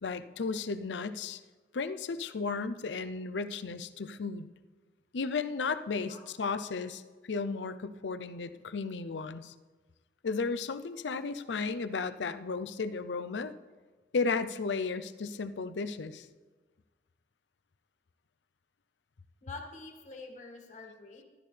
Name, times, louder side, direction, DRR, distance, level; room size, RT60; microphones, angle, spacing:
voice 1, 0.0-1.4 1.7-4.5 5.1-9.5 10.2-13.5 14.1-16.3, left 4 dB, 90° left, 11 dB, 0.6 m, -34 dB
voice 2, 19.4-21.2, left 3 dB, 45° left, 2 dB, 1.9 m, -46 dB
14.5 x 12.5 x 3.3 m, 1.3 s
head